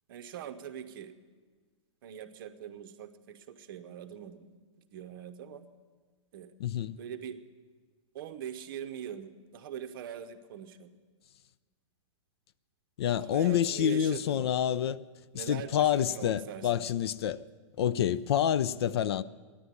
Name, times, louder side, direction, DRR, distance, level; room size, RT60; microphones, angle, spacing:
voice 1, 0.1-1.2 2.0-4.5 4.9-5.7 6.3-6.5 7.0-7.4 8.1-10.9 13.2-14.5 15.3-16.8, right 9 dB, 45° right, 0.8 m, -42 dB
voice 2, 6.6-6.9 13.0-15.0 15.3-17.4 17.8-19.2, left 10 dB, 55° left, 0.4 m, -28 dB
11.5 x 10.0 x 9.5 m
hypercardioid pair, 170°, 16 cm